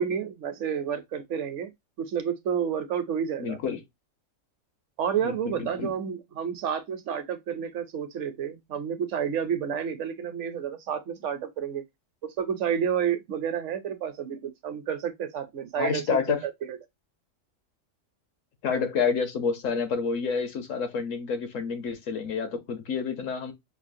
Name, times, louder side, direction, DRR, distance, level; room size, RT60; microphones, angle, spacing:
voice 1, 0.0-1.7 2.0-3.6 5.0-11.8 12.4-16.8, right 8 dB, 70° right, 0.9 m, -30 dB
voice 2, 3.4-3.8 5.2-5.9 15.8-16.4 18.6-23.5, left 5 dB, 75° left, 1.3 m, -29 dB
5.5 x 2.0 x 2.5 m
omnidirectional pair, 1.4 m